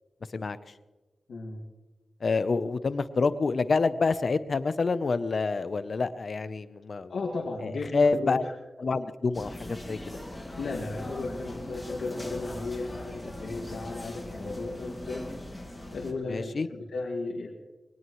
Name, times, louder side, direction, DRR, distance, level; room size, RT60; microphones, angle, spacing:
voice 1, 1.3-1.6 7.1-8.5 10.6-15.3 15.9-17.5, left 3 dB, 85° left, -2 dB, 2.1 m, -35 dB
voice 2, 2.2-7.1 7.6-8.4 8.8-10.2 16.3-16.7, left 4 dB, 50° left, 13 dB, 0.7 m, -27 dB
sound 1, 9.3-16.1, left 1 dB, 10° left, 2.2 m, -40 dB
22.5 x 18.5 x 3.1 m, 1.2 s
wide cardioid pair, 135°, 0 cm